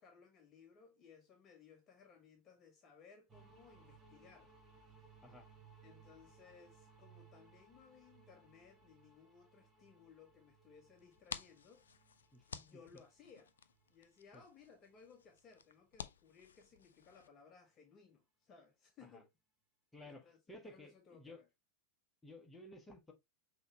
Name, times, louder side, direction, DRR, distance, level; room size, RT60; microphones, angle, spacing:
voice 1, 0.0-4.5 5.8-11.9 12.5-13.5 13.9-19.3 20.0-21.5, left 6 dB, 30° left, 0.8 m, -62 dB
sound 1, 3.3-15.8, right 4 dB, 15° right, 1.1 m, -65 dB
sound 2, 11.0-17.3, left 7 dB, 70° left, 0.3 m, -53 dB
voice 2, 19.9-21.4 22.2-23.1, left 1 dB, 10° left, 1.1 m, -55 dB
5.6 x 2.9 x 2.8 m
figure-of-eight pair, 90°, 0 cm